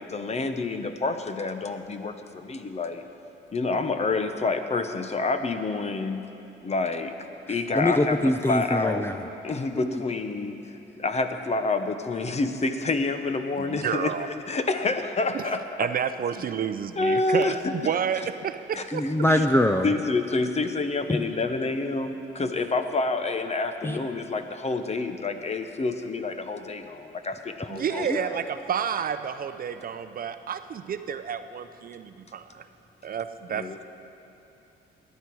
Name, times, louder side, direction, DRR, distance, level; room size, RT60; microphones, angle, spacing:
voice 1, 0.0-3.0 3.5-6.2 6.6-7.1 7.5-9.1 9.4-15.9 17.0-17.9 18.7-18.8 19.3-19.5 19.8-28.3 33.5-33.9, left 3 dB, 35° left, 8 dB, 0.9 m, -28 dB
voice 2, 7.7-9.2 18.9-19.9 23.8-24.0 28.0-28.2, left 1 dB, 10° left, 6 dB, 0.5 m, -23 dB
voice 3, 13.6-14.3 15.3-15.5 15.8-17.6 17.8-19.0 27.7-32.7 33.0-33.7, right 8 dB, 45° right, 11 dB, 0.5 m, -30 dB
18.0 x 10.5 x 4.7 m, 2.8 s
cardioid pair, 90°, 20 cm